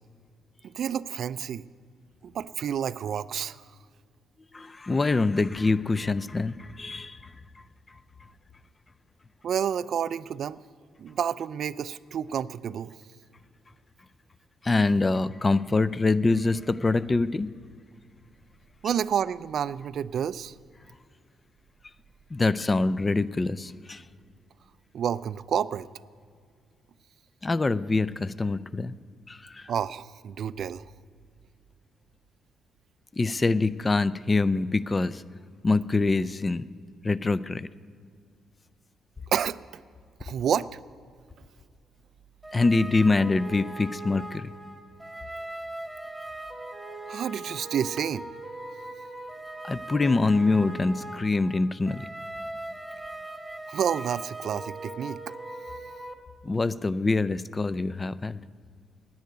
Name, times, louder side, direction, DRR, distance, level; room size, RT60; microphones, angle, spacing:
voice 1, 0.6-1.7 2.2-3.6 9.4-10.6 11.0-13.0 18.8-20.6 24.9-25.9 29.7-30.9 39.3-39.8 40.2-40.7 47.1-48.3 53.7-55.4, right 8 dB, 65° right, 16 dB, 0.3 m, -29 dB
voice 2, 4.5-7.2 14.6-17.5 22.3-24.0 27.4-28.9 29.3-29.7 33.1-35.2 35.6-36.7 37.0-37.7 42.5-44.5 49.6-52.0 56.4-58.4, left 3 dB, 25° left, 16 dB, 0.4 m, -25 dB
sound 1, 42.4-56.1, right 2 dB, 5° right, 1.6 m, -40 dB
10.5 x 9.3 x 9.6 m, 2.1 s
cardioid pair, 90°, 0 cm